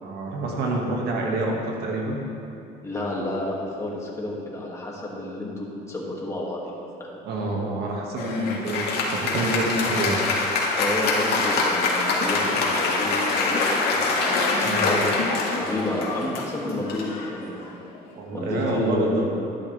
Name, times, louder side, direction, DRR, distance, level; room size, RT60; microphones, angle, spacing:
voice 1, 0.0-2.2 7.2-10.2 14.6-14.9 18.1-19.2, right 2 dB, 75° right, -2 dB, 2.2 m, -27 dB
voice 2, 2.8-6.7 7.0-7.2 10.7-15.1 15.5-17.7 18.3-19.2, left 1 dB, 15° left, -4 dB, 2.5 m, -30 dB
Applause, 8.2-18.0, left 3 dB, 70° left, 2.1 m, -24 dB
11.5 x 11.5 x 3.6 m, 2.7 s
cardioid pair, 110°, 17 cm